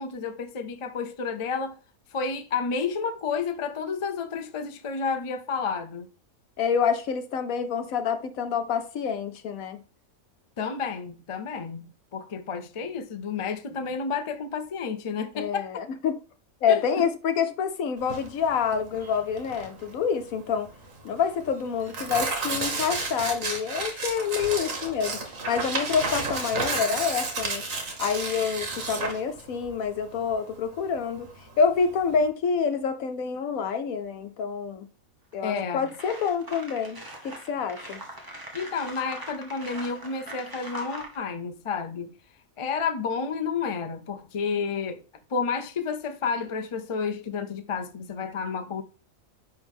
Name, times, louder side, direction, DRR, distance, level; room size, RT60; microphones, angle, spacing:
voice 1, 0.0-1.8 2.1-6.1 10.6-11.9 12.1-15.7 16.7-17.0 35.4-35.9 38.5-42.1 42.6-45.0 45.3-48.8, left 5 dB, 40° left, 0.5 m, -30 dB
voice 2, 6.6-9.8 15.3-16.2 16.6-20.7 21.0-25.2 25.5-27.6 28.0-31.3 31.6-34.9 35.3-38.0, left 6 dB, 80° left, 1.2 m, -27 dB
Tearing, 18.0-32.3, right 3 dB, 70° right, 1.8 m, -32 dB
sound 1, 35.3-35.4 35.8-41.2, right 1 dB, 15° right, 1.3 m, -41 dB
9.7 x 3.5 x 3.6 m
omnidirectional pair, 1.5 m